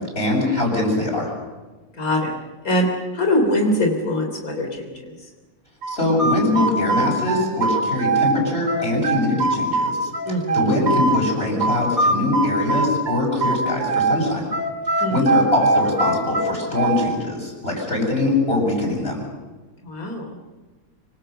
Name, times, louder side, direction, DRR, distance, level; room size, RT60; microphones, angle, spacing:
voice 1, 0.2-1.3 5.9-10.1 10.5-14.5 15.0-19.2, left 2 dB, 45° left, 0 dB, 8.0 m, -22 dB
voice 2, 2.0-2.4 2.6-2.9 3.1-5.1 10.3-10.8 15.0-15.4 19.8-20.6, left 1 dB, 85° left, 3 dB, 4.0 m, -23 dB
sound 1, 5.8-8.4 8.7-11.2 11.6-14.2 14.5-17.1, right 3 dB, 75° right, 3.9 m, -21 dB
26.0 x 25.5 x 6.8 m, 1.2 s
omnidirectional pair, 1.5 m